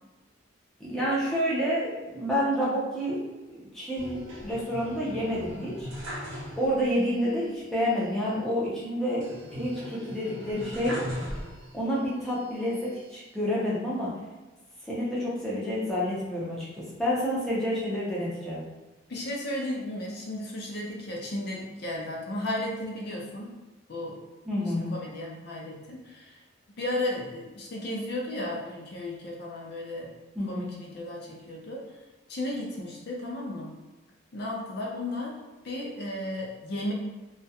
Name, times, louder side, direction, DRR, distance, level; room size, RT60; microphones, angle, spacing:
voice 1, 0.8-3.2 3.5-5.9 6.6-9.2 9.5-11.0 11.7-14.1 14.8-18.6 24.5-24.9 30.3-30.7, equal, ahead, -7 dB, 0.5 m, -29 dB
sound 1, 4.0-7.0 7.3-7.4 9.2-11.9 12.5-13.3, equal, 65° right, 0.6 m, -39 dB
voice 2, 19.1-23.6 23.9-24.2 24.6-26.4 26.8-30.1 30.4-31.8 32.3-33.7 34.3-35.4 35.6-36.9, left 1 dB, 55° left, -2 dB, 0.4 m, -34 dB
2.3 x 2.1 x 2.7 m, 1.2 s
head